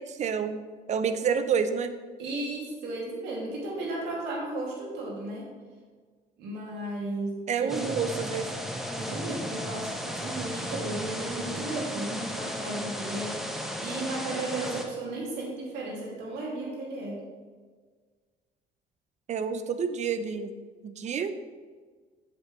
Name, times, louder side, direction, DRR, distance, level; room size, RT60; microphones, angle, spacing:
voice 1, 0.1-0.6 0.9-1.9 7.5-8.5 19.3-20.5 20.8-21.3, right 6 dB, 45° right, 10 dB, 0.6 m, -28 dB
voice 2, 2.2-5.5 6.4-7.9 9.0-17.2, right 2 dB, 85° right, -3 dB, 2.4 m, -34 dB
sound 1, 7.7-14.8, equal, ahead, 1.0 m, -35 dB
7.5 x 7.4 x 3.1 m, 1.5 s
cardioid pair, 110°, 17 cm